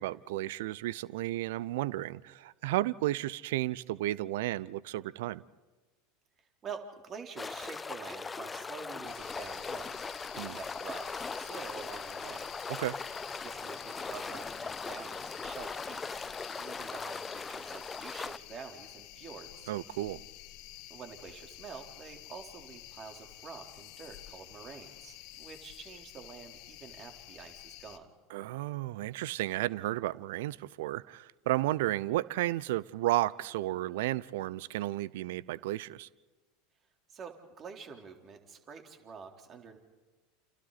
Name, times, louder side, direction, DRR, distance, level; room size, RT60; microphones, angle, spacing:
voice 1, 0.0-5.4 10.4-10.6 12.7-13.0 19.7-20.2 28.3-36.1, right 16 dB, 65° right, 21 dB, 0.7 m, -33 dB
voice 2, 6.6-10.0 10.3-12.5 13.4-16.3 16.6-19.7 20.9-28.1 37.1-39.8, right 6 dB, 35° right, 3 dB, 3.7 m, -47 dB
sound 1, 7.4-18.4, left 4 dB, 20° left, 0.7 m, -39 dB
sound 2, 9.0-28.0, left 16 dB, 55° left, 1.6 m, -50 dB
29.5 x 29.0 x 4.2 m, 1.2 s
hypercardioid pair, 80°, 0 cm